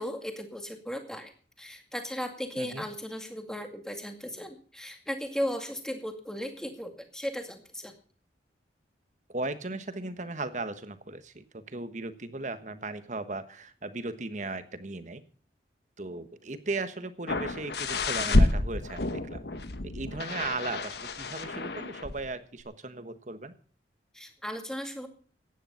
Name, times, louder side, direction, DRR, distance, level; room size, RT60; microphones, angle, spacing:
voice 1, 0.0-1.3 1.6-7.9 24.1-25.1, equal, 5° left, 5 dB, 2.1 m, -36 dB
voice 2, 9.3-15.2 16.0-19.4 19.8-23.5, right 3 dB, 45° right, 11 dB, 1.3 m, -37 dB
sound 1, 17.3-22.3 22.6-22.7, left 2 dB, 65° left, 1.3 m, -29 dB
15.5 x 10.0 x 5.7 m, 0.43 s
head